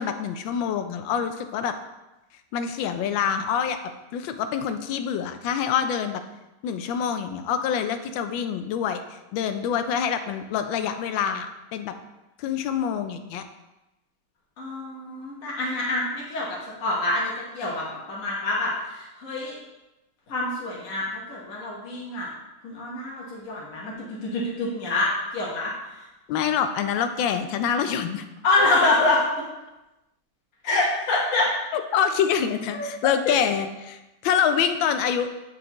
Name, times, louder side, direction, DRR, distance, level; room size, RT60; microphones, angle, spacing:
voice 1, 0.0-1.7 2.5-3.8 4.1-6.2 6.6-11.9 12.4-13.4 26.3-28.2 31.7-35.3, left 8 dB, 90° left, 8 dB, 1.3 m, -26 dB
voice 2, 14.6-19.5 20.3-22.3 22.6-26.0 28.4-29.4 30.6-31.5 32.7-32.9, left 2 dB, 50° left, -5 dB, 1.6 m, -26 dB
8.6 x 4.7 x 3.0 m, 0.99 s
omnidirectional pair, 2.1 m